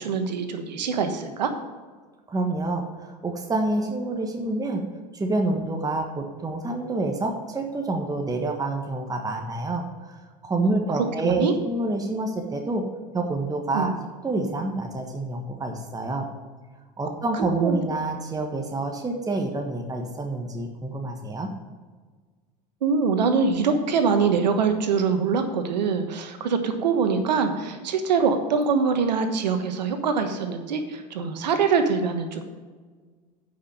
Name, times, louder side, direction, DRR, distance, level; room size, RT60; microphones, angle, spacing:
voice 1, 0.0-1.5 11.2-11.5 13.7-13.9 17.3-17.8 22.8-32.4, right 5 dB, 90° right, 7 dB, 1.3 m, -24 dB
voice 2, 2.3-4.8 5.1-12.8 13.1-13.9 14.2-16.3 17.0-21.5, right 2 dB, 15° right, 3 dB, 1.5 m, -27 dB
9.7 x 5.7 x 6.7 m, 1.5 s
hypercardioid pair, 90°, 21 cm